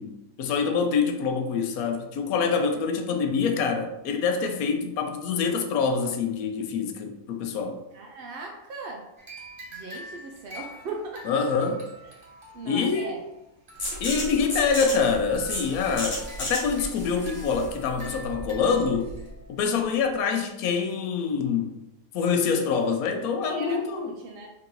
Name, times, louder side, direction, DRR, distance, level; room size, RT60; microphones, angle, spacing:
voice 1, 0.0-7.8 11.3-11.8 12.6-13.2 14.0-19.1 19.5-21.7 22.1-24.1, left 5 dB, 80° left, 5 dB, 1.0 m, -25 dB
voice 2, 7.9-9.1 9.7-11.4 12.5-13.2 23.4-24.5, right 3 dB, 70° right, 0 dB, 0.5 m, -38 dB
sound 1, 9.2-20.2, equal, 40° right, 1.1 m, -46 dB
sound 2, 13.8-19.3, left 1 dB, 50° left, 1.3 m, -34 dB
3.8 x 2.7 x 3.7 m, 0.90 s
omnidirectional pair, 1.5 m